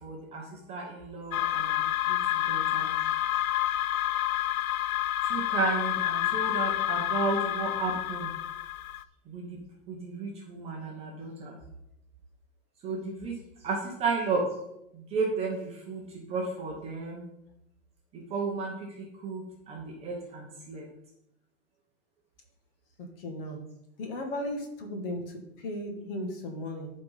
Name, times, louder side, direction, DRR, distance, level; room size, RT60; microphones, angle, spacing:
voice 1, 0.0-3.0 5.2-8.3 9.3-9.6 9.9-11.6 12.8-13.4 13.6-14.5 14.9-17.2 18.1-20.9, right 4 dB, 15° right, -2 dB, 1.1 m, -33 dB
sound 1, 1.3-9.0, left 12 dB, 75° left, 0.6 m, -29 dB
voice 2, 23.2-23.6 24.0-26.9, left 1 dB, 40° left, 3 dB, 2.1 m, -36 dB
11.5 x 4.5 x 5.6 m, 0.82 s
supercardioid pair, 170°, 43 cm